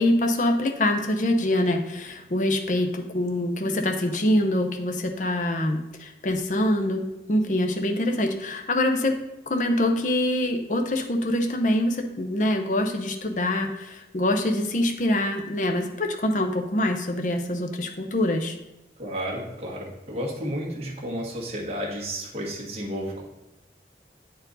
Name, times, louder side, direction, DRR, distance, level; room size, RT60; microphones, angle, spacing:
voice 1, 0.0-9.1 9.5-18.6, left 1 dB, 45° left, 4 dB, 0.6 m, -25 dB
voice 2, 19.0-23.2, equal, 35° right, -3 dB, 1.5 m, -32 dB
8.4 x 4.5 x 4.0 m, 0.93 s
head